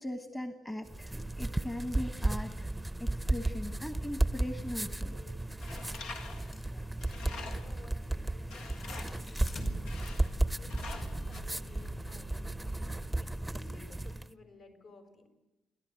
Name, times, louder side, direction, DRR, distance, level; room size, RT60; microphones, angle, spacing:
voice 1, 0.0-2.7 3.0-5.2, left 1 dB, 15° left, 6 dB, 1.4 m, -39 dB
sound 1, 0.9-14.3, right 2 dB, 5° right, 0.7 m, -34 dB
sound 2, 4.1-4.2 5.1-5.2 6.2-13.1, left 4 dB, 45° left, 5.3 m, -50 dB
Tools, 5.6-7.9 8.5-9.3 9.9-10.4 10.7-11.4, left 4 dB, 90° left, 1.7 m, -46 dB
voice 2, 6.6-12.5 13.2-15.3, left 2 dB, 60° left, 4 dB, 6.2 m, -57 dB
30.0 x 12.0 x 7.9 m, 0.96 s
cardioid pair, 90°, 0 cm